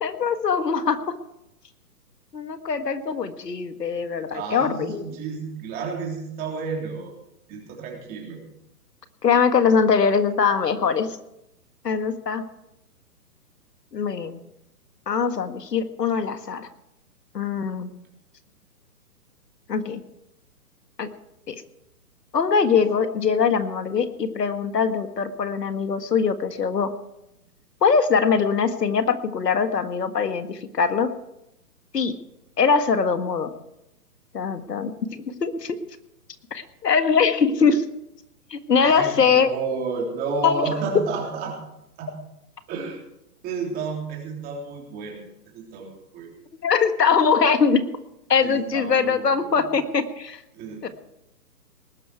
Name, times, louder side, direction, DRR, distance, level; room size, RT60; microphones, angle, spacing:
voice 1, 0.0-1.0 2.3-5.1 9.2-11.1 11.8-12.4 13.9-14.4 15.1-16.7 17.3-17.9 19.7-20.0 21.0-21.1 21.5-21.6 22.3-26.9 27.8-31.1 31.9-32.2 32.6-33.5 34.3-35.8 36.5-37.8 38.5-39.6 40.4-40.5 46.6-47.8 48.3-50.4 50.8-50.9, left 6 dB, 90° left, 9 dB, 1.8 m, -22 dB
voice 2, 4.3-7.1 7.5-8.4 38.8-41.6 42.0-42.1 42.7-43.0 43.4-45.2 45.5-46.3 48.4-49.7 50.5-50.9, right 4 dB, 20° right, 0 dB, 3.4 m, -31 dB
19.5 x 11.5 x 4.6 m, 0.84 s
hypercardioid pair, 155°, 47 cm